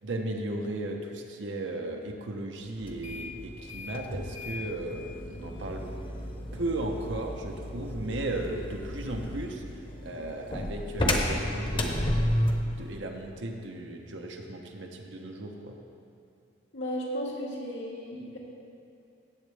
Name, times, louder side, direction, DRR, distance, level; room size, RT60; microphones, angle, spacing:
voice 1, 0.0-5.9 6.5-9.6 10.0-12.2 12.7-15.8, right 1 dB, 85° right, 2 dB, 1.0 m, -36 dB
sound 1, 2.8-12.7, left 1 dB, 30° left, 0.9 m, -32 dB
voice 2, 16.7-18.4, equal, 85° left, -4 dB, 2.1 m, -34 dB
16.5 x 7.4 x 3.4 m, 2.6 s
head